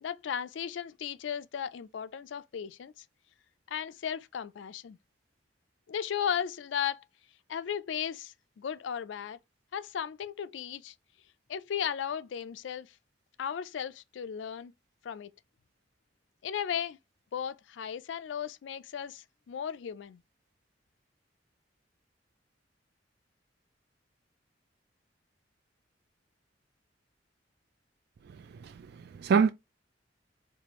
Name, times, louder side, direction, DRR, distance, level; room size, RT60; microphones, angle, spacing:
voice 1, 0.0-3.0 3.7-5.0 5.9-7.1 7.5-9.4 9.7-10.9 11.5-12.9 13.4-14.7 15.0-15.3 16.4-17.0 17.3-20.2, left 8 dB, 80° left, 0.4 m, -35 dB
voice 2, 28.3-29.5, right 6 dB, 60° right, 0.3 m, -27 dB
4.5 x 2.5 x 3.0 m
head